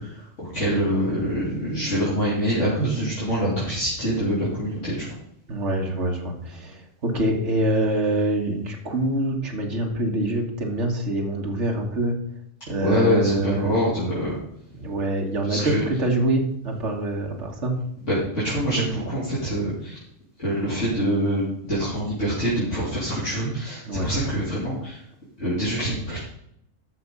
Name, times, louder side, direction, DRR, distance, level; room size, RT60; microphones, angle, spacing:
voice 1, 0.0-5.1 12.7-14.4 15.4-15.8 18.1-20.0 20.4-25.0 25.4-26.2, equal, 70° left, -9 dB, 3.9 m, -25 dB
voice 2, 5.5-12.1 12.7-13.7 14.8-17.8 23.9-24.1, right 1 dB, 65° right, 1 dB, 2.2 m, -25 dB
13.0 x 6.1 x 5.4 m, 0.73 s
omnidirectional pair, 1.3 m